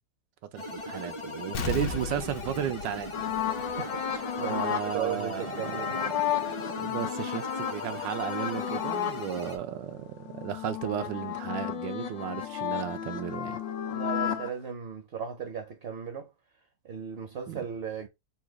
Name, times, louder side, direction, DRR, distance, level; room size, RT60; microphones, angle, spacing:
voice 1, 0.5-3.1 4.4-5.6 6.8-13.6 17.5-17.6, right 10 dB, 85° right, 1.4 m, -34 dB
sound 1, 0.6-9.6, left 2 dB, 35° left, 0.5 m, -39 dB
Explosion, 1.5-4.1 4.5-4.6, left 4 dB, 65° left, 1.1 m, -36 dB
sound 2, 3.1-9.3 9.7-14.5, left 10 dB, 85° left, 1.5 m, -33 dB
voice 2, 3.6-6.0 13.9-16.3 16.8-18.1, right 7 dB, 55° right, 0.7 m, -36 dB
4.1 x 2.3 x 4.6 m
omnidirectional pair, 1.9 m